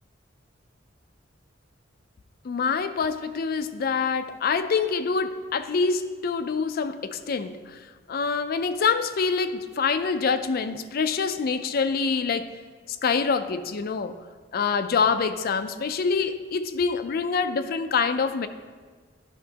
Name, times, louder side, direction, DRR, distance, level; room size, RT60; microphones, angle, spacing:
voice 1, 2.4-7.8 8.1-12.5 12.9-14.2 14.5-18.5, left 5 dB, 50° left, 10 dB, 0.4 m, -26 dB
10.5 x 6.0 x 2.8 m, 1.5 s
head